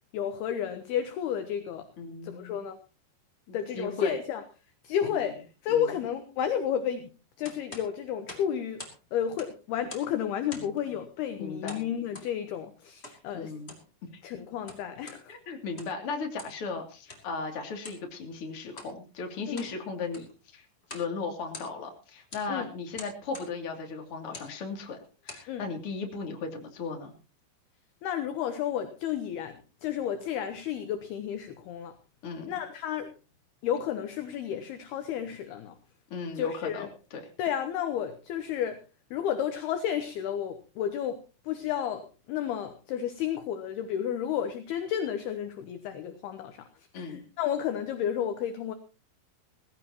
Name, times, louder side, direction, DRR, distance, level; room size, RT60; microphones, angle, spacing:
voice 1, 0.1-1.9 2.2-2.8 3.5-4.4 4.8-7.1 7.4-8.8 9.1-13.5 14.2-15.3 19.5-19.7 22.5-22.7 25.5-25.6 28.0-32.0 32.5-33.1 33.6-35.8 36.4-36.9 37.4-38.8 39.1-46.6 46.9-48.7, left 9 dB, 70° left, 9 dB, 2.6 m, -32 dB
voice 2, 2.0-2.7 3.5-4.2 5.7-5.9 10.5-10.7 11.4-11.8 13.3-13.7 14.1-14.2 15.3-20.3 20.5-20.6 20.9-25.0 25.2-27.1 32.2-32.5 36.1-37.2 46.9-47.2, left 4 dB, 35° left, 3 dB, 2.9 m, -36 dB
sound 1, 7.4-9.0 9.3-10.2 10.5-10.8 11.7-12.3 13.0-13.2 13.6-13.9 14.5-15.2 15.6-16.0 16.4-16.6 17.1-17.3 17.8-18.0 18.7-18.9 19.3-19.8 20.0-20.4 20.8-21.1 21.4-21.9 22.3-22.5 22.9-23.5 24.2-24.5 25.0-25.5, left 2 dB, 15° left, 2.3 m, -45 dB
19.0 x 16.0 x 2.9 m, 0.32 s
omnidirectional pair, 5.5 m